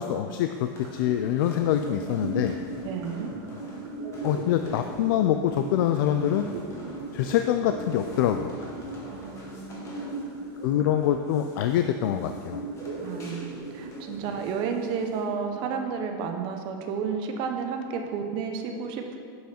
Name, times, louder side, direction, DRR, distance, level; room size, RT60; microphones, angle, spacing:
voice 1, 0.0-2.6 4.2-6.5 7.1-8.6 10.6-12.6, left 10 dB, 65° left, 7 dB, 0.4 m, -25 dB
sound 1, 0.5-15.2, left 1 dB, 25° left, 1.7 m, -46 dB
sound 2, 0.8-16.8, right 2 dB, 80° right, 1.6 m, -39 dB
voice 2, 2.8-3.3 9.1-10.1 13.0-19.2, right 6 dB, 40° right, 4 dB, 0.8 m, -32 dB
7.7 x 5.6 x 4.4 m, 2.1 s
supercardioid pair, 150°, 12 cm